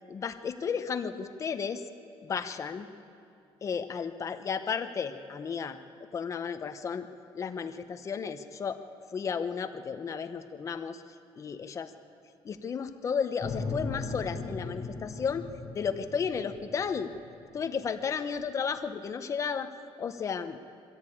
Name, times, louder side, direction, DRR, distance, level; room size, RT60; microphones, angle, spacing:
voice 1, 0.1-1.8 2.2-2.9 3.6-5.8 6.1-7.1 7.3-8.8 9.1-11.0 11.4-11.9 12.4-15.5 15.7-17.1 17.5-19.7 20.0-20.6, left 6 dB, 30° left, 9 dB, 0.9 m, -33 dB
sound 1, 13.4-17.6, left 3 dB, 15° left, 4.1 m, -38 dB
23.0 x 15.5 x 8.7 m, 2.4 s
cardioid pair, 170°, 10 cm